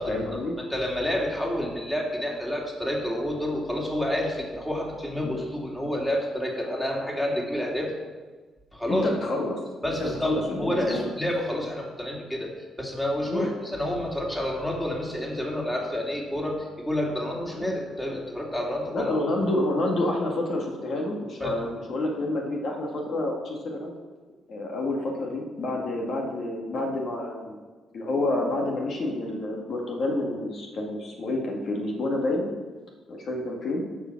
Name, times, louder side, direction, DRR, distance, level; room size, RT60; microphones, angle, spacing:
voice 1, 0.1-0.5 5.2-5.5 8.9-9.6 9.9-11.1 13.3-13.5 17.5-17.7 18.9-23.9 24.5-27.6 27.9-32.5 33.1-33.8, left 2 dB, 60° left, 0 dB, 1.8 m, -28 dB
voice 2, 0.7-7.9 8.7-9.1 9.8-12.5 12.8-19.1 21.4-21.6, left 1 dB, 5° left, -2 dB, 2.6 m, -29 dB
14.0 x 4.9 x 5.8 m, 1.4 s
cardioid pair, 90°, 0 cm